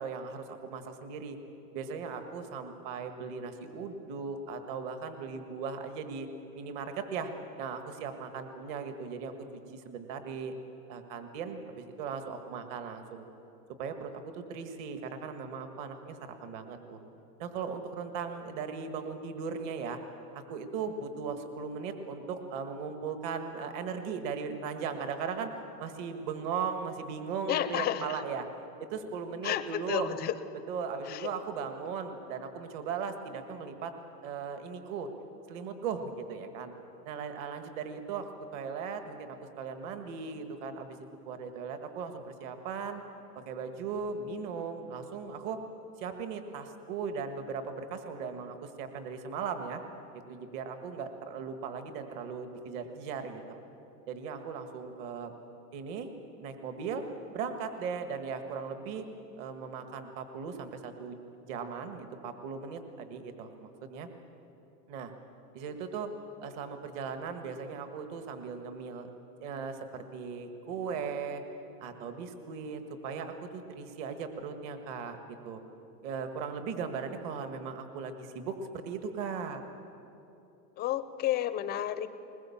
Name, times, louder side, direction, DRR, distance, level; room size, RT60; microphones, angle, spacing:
voice 1, 0.0-1.4 1.7-6.3 6.5-7.3 7.6-9.3 9.7-10.5 10.9-13.2 13.8-17.0 17.4-20.0 20.5-28.5 28.9-30.1 30.7-33.9 34.2-35.1 35.5-36.7 37.1-41.0 41.3-43.0 43.4-45.6 46.0-49.8 50.3-53.6 54.1-55.3 55.7-56.1 56.4-57.0 57.3-59.1 59.4-61.2 61.4-64.1 64.9-65.1 65.5-66.1 66.4-69.1 69.4-71.4 71.8-75.2 75.4-75.6 76.0-79.6, right 5 dB, 40° right, 7 dB, 1.8 m, -38 dB
voice 2, 27.5-28.2 29.4-30.3 31.1-31.3 80.8-82.1, left 12 dB, 20° left, 13 dB, 0.6 m, -31 dB
21.0 x 21.0 x 7.2 m, 2.9 s
supercardioid pair, 135°, 49 cm